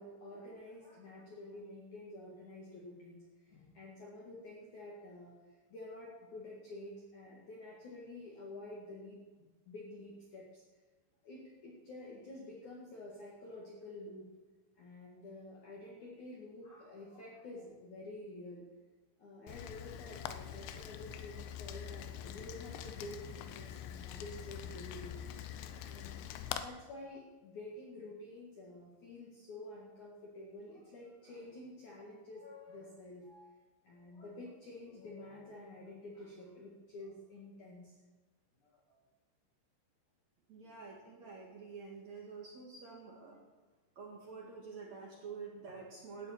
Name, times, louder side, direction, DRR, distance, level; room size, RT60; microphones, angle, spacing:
voice 1, 0.0-9.2 9.7-10.6 11.2-14.3 14.8-18.6 19.2-25.2 25.8-26.2 26.6-38.0 38.6-39.0, left 2 dB, 55° left, -4 dB, 2.4 m, -49 dB
Rain, 19.5-26.6, left 10 dB, 80° left, 2.7 m, -44 dB
voice 2, 40.5-43.4 44.0-46.3, right 5 dB, 50° right, -2 dB, 2.2 m, -48 dB
17.5 x 12.0 x 4.4 m, 1.3 s
omnidirectional pair, 5.7 m